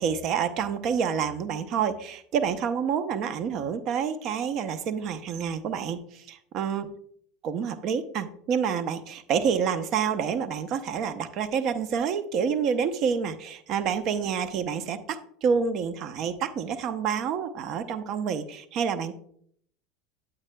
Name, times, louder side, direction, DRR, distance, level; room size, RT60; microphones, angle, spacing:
voice 1, 0.0-6.9 7.4-19.1, right 7 dB, 50° right, 11 dB, 0.7 m, -28 dB
8.9 x 8.6 x 2.2 m, 0.64 s
supercardioid pair, 110°, 0 cm